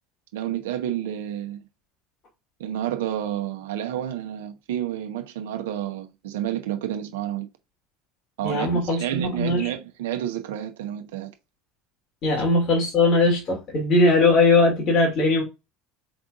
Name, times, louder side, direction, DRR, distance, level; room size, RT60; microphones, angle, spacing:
voice 1, 0.3-1.7 2.6-7.5 8.4-11.3, right 11 dB, 80° right, 1.0 m, -30 dB
voice 2, 8.4-9.6 12.2-15.4, left 2 dB, 50° left, 2.5 m, -20 dB
4.9 x 3.9 x 2.5 m
hypercardioid pair, 85°, 0 cm